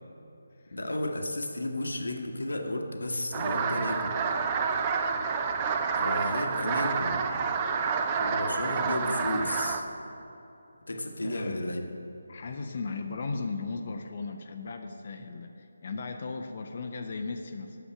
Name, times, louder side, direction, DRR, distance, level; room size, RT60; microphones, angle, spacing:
voice 1, 0.7-4.2 5.9-7.2 8.2-9.8 10.9-11.9, left 1 dB, 75° left, 4 dB, 1.1 m, -33 dB
sound 1, 3.3-9.8, right 5 dB, 25° right, 0.5 m, -29 dB
voice 2, 11.2-11.8 12.3-17.8, left 4 dB, 45° left, 5 dB, 0.6 m, -36 dB
8.9 x 7.0 x 5.8 m, 2.9 s
figure-of-eight pair, 155°, 0 cm